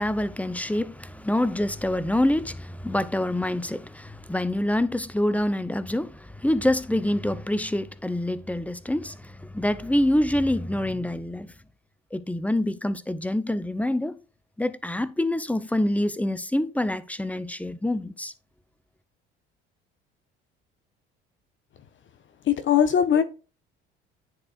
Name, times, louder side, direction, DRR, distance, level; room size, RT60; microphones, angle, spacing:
voice 1, 0.0-11.5 12.1-14.2 14.6-18.3, left 1 dB, 5° left, 0.6 m, -26 dB
voice 2, 22.5-23.2, left 8 dB, 40° left, 0.8 m, -20 dB
9.8 x 4.4 x 2.4 m
hypercardioid pair, 65°, 29 cm